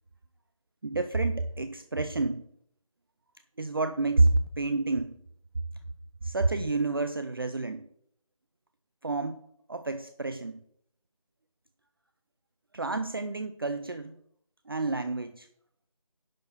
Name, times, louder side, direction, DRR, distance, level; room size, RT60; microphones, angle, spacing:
voice 1, 0.8-2.4 3.6-5.2 6.2-7.9 9.0-9.4 9.7-10.6 12.7-14.2 14.7-15.5, right 3 dB, 40° right, 10 dB, 0.5 m, -29 dB
10.5 x 4.7 x 6.1 m, 0.69 s
figure-of-eight pair, 165°, 19 cm